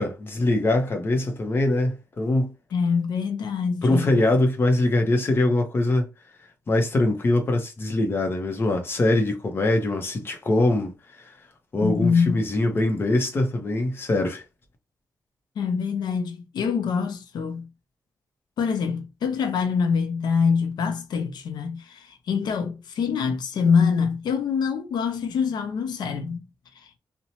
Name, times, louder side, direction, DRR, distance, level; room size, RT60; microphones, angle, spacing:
voice 1, 0.0-2.5 3.8-6.1 6.7-10.9 11.7-14.4, left 2 dB, 30° left, 0.7 m, -23 dB
voice 2, 2.7-4.1 11.8-12.4 15.6-17.7 18.6-26.5 26.8-26.9, left 6 dB, 90° left, 0.4 m, -25 dB
2.8 x 2.1 x 2.8 m
wide cardioid pair, 165°, 7 cm